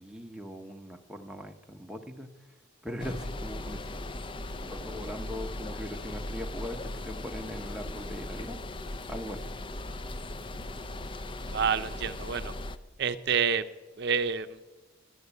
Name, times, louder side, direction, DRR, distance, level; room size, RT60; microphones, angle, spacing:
voice 1, 0.0-2.3 2.8-4.0 4.6-8.6 9.1-9.5, equal, 5° right, 3 dB, 0.8 m, -40 dB
sound 1, 3.0-12.8, left 1 dB, 25° left, 0.5 m, -38 dB
voice 2, 11.5-12.5 13.0-13.6 14.0-14.6, right 6 dB, 55° right, 12 dB, 0.7 m, -28 dB
12.5 x 11.0 x 8.1 m, 1.2 s
head